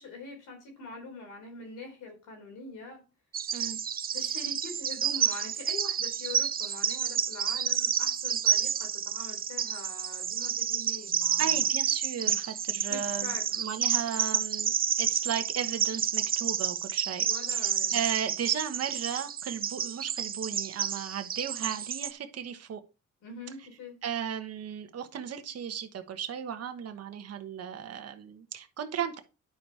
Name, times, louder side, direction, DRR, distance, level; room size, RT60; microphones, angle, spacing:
voice 1, 0.0-3.0 4.1-11.5 12.9-13.5 17.2-18.0 23.2-24.0, left 3 dB, 80° left, 3.9 m, -44 dB
Bird vocalization bird call bird song, 3.3-22.1, right 8 dB, 30° right, 0.4 m, -30 dB
voice 2, 11.4-14.7 15.0-22.8 24.0-29.2, right 8 dB, 55° right, 1.1 m, -35 dB
10.5 x 4.8 x 4.2 m
cardioid pair, 90°, 30 cm